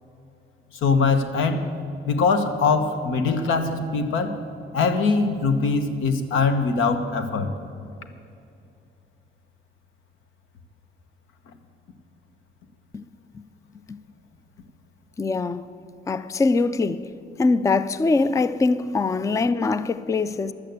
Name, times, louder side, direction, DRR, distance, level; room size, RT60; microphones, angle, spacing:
voice 1, 0.8-1.7 2.1-4.4 4.7-7.5, left 4 dB, 90° left, 1.1 m, -22 dB
voice 2, 15.2-15.7 16.1-17.1 17.4-20.5, left 3 dB, 15° left, 0.4 m, -23 dB
11.5 x 8.5 x 7.9 m
cardioid pair, 90°, 20 cm